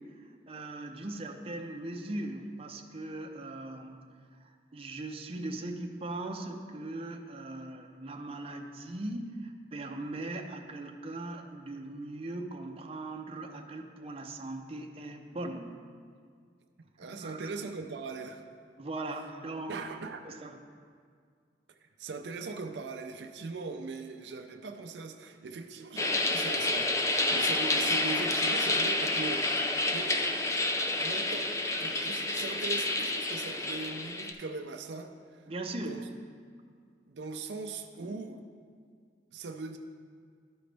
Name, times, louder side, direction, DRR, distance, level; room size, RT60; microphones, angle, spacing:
voice 1, 0.5-4.0 4.4-15.7 17.0-17.4 18.8-19.8 20.2-20.6 35.5-36.0 38.0-38.2, right 2 dB, 35° right, 3 dB, 0.6 m, -39 dB
voice 2, 17.0-18.4 19.7-20.2 21.8-30.2 31.0-31.5 31.8-35.4 35.8-36.0 37.1-38.4 39.3-39.8, right 3 dB, 80° right, 5 dB, 0.5 m, -40 dB
sound 1, 26.0-34.3, left 2 dB, 15° left, 0.5 m, -29 dB
12.5 x 5.1 x 3.3 m, 2.1 s
head